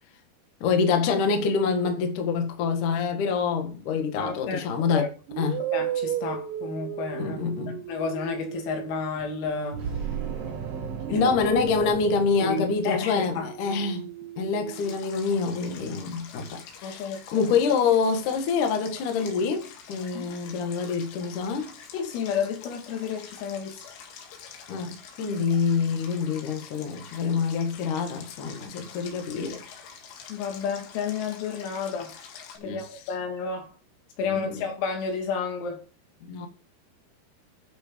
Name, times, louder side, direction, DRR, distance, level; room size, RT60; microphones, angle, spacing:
voice 1, 0.6-5.1 5.4-5.6 7.2-7.8 11.1-14.1 14.4-21.7 24.7-29.8 32.6-33.2 34.2-34.7 36.2-36.5, left 5 dB, 55° left, 2.4 m, -26 dB
voice 2, 4.2-4.6 4.9-5.1 5.7-7.4 7.9-9.8 11.1-11.2 12.4-13.5 16.8-17.2 20.2-20.3 21.9-23.8 30.3-32.1 32.6-33.7 34.2-35.8, left 6 dB, 90° left, 5.1 m, -31 dB
sound 1, 4.2-4.5 5.3-10.6 11.0-15.0, right 11 dB, 85° right, 3.5 m, -36 dB
sound 2, 9.7-13.2, right 7 dB, 65° right, 1.5 m, -35 dB
Stream, 14.7-32.6, left 7 dB, 75° left, 4.4 m, -46 dB
12.0 x 6.7 x 5.1 m
omnidirectional pair, 5.8 m